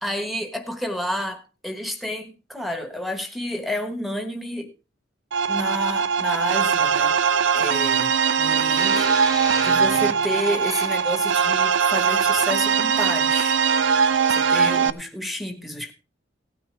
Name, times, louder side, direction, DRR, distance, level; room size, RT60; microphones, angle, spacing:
voice 1, 0.0-4.7 5.5-7.2 7.5-13.6 14.3-15.9, equal, ahead, 1.3 m, -30 dB
sound 1, 5.3-14.9, right 6 dB, 70° right, 0.6 m, -21 dB
sound 2, 8.8-11.3 12.2-12.4, right 2 dB, 20° right, 1.5 m, -33 dB
17.0 x 9.4 x 3.3 m
head